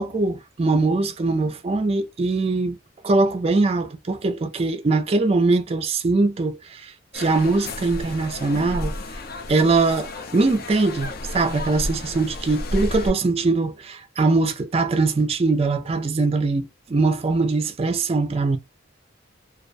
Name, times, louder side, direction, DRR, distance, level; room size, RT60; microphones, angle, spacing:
voice 1, 0.0-2.8 3.0-8.9 9.5-18.6, right 3 dB, 30° right, 0.3 m, -22 dB
sound 1, 7.1-13.1, left 1 dB, 50° left, 0.4 m, -32 dB
2.3 x 2.1 x 2.5 m
head